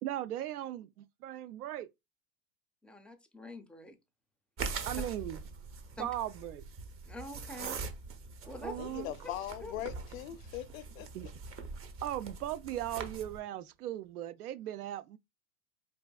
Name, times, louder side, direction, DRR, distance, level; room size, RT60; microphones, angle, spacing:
voice 1, 0.0-1.9 4.9-5.4 6.0-6.6 8.6-9.1 11.1-11.3 12.0-15.2, right 13 dB, 80° right, 0.5 m, -38 dB
voice 2, 2.8-4.0 4.9-5.0 6.0-6.1 7.1-7.8 8.5-8.8 9.6-9.7, left 1 dB, 5° left, 0.4 m, -45 dB
sound 1, 4.6-13.4, right 4 dB, 30° right, 0.7 m, -43 dB
sound 2, 8.4-14.1, right 4 dB, 50° right, 1.2 m, -60 dB
voice 3, 8.8-11.1, left 13 dB, 65° left, 0.6 m, -40 dB
4.5 x 2.5 x 2.2 m
hypercardioid pair, 95°, 44 cm